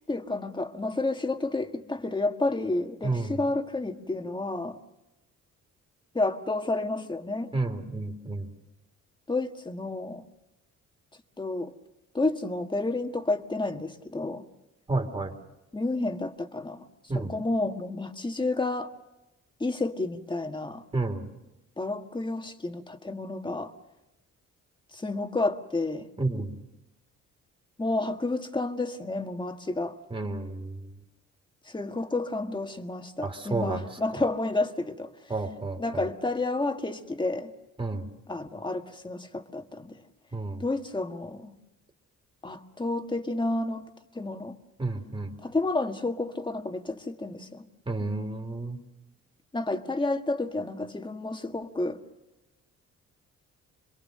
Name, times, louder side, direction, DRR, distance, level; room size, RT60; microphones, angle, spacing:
voice 1, 0.0-4.8 6.1-7.6 9.3-10.2 11.4-11.7 12.1-14.4 15.7-16.8 17.1-18.9 19.6-20.8 21.8-23.7 24.9-26.1 27.8-30.0 31.7-35.1 35.8-37.5 38.3-40.0 40.6-41.5 42.4-43.9 44.2-44.6 45.4-47.7 49.5-52.0, left 2 dB, 15° left, 6 dB, 1.7 m, -30 dB
voice 2, 3.0-3.4 7.5-8.5 14.9-15.3 17.1-17.3 20.9-21.2 26.2-26.5 30.1-30.9 33.2-33.8 35.3-36.0 37.8-38.1 40.3-40.6 44.8-45.3 47.9-48.8, right 2 dB, 15° right, 5 dB, 3.0 m, -31 dB
27.0 x 22.0 x 6.6 m, 1.0 s
cardioid pair, 90°, 30 cm